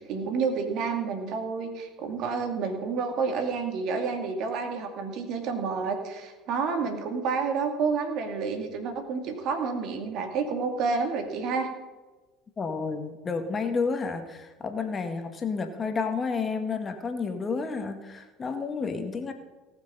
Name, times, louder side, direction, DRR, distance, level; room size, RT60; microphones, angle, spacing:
voice 1, 0.0-11.7, right 5 dB, 60° right, 5 dB, 2.3 m, -29 dB
voice 2, 12.6-19.3, left 4 dB, 30° left, 6 dB, 1.7 m, -30 dB
18.5 x 6.3 x 5.6 m, 1.2 s
hypercardioid pair, 75°, 0 cm